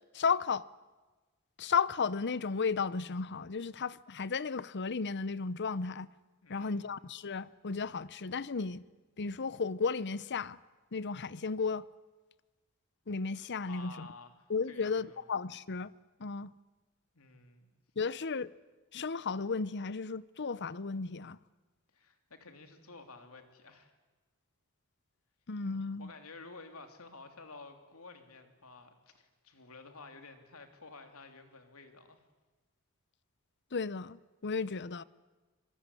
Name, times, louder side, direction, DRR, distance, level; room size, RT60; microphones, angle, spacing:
voice 1, 0.1-0.7 1.6-6.1 6.5-8.8 9.2-10.6 10.9-11.9 13.1-14.1 14.5-15.9 16.2-16.5 18.0-18.5 18.9-21.4 25.5-26.1 33.7-35.0, left 5 dB, 55° left, 0.8 m, -34 dB
voice 2, 6.4-6.9 13.6-15.2 17.1-17.7 21.9-23.9 26.0-32.2, left 3 dB, 70° left, 3.3 m, -52 dB
26.0 x 21.0 x 9.9 m
head